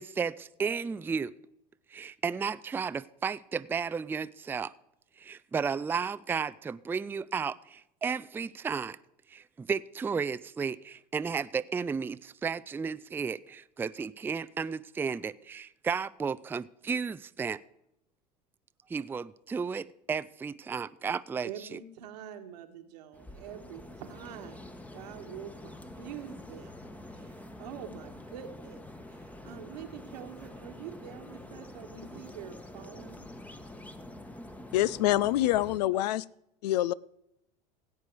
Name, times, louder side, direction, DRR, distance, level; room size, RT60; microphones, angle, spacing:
voice 1, 0.0-1.3 1.9-4.7 5.2-9.0 9.3-17.6 18.9-21.8, right 6 dB, 10° right, 0.3 m, -33 dB
voice 2, 21.4-24.6 24.9-26.8 27.1-27.3 27.6-28.9 29.4-33.2 35.9-36.0, right 9 dB, 80° right, 1.6 m, -45 dB
sound 1, 23.1-35.8, left 1 dB, 5° left, 1.1 m, -46 dB
voice 3, 34.7-36.2 36.6-36.9, left 15 dB, 75° left, 0.5 m, -26 dB
16.5 x 8.2 x 4.7 m
hypercardioid pair, 85°, 21 cm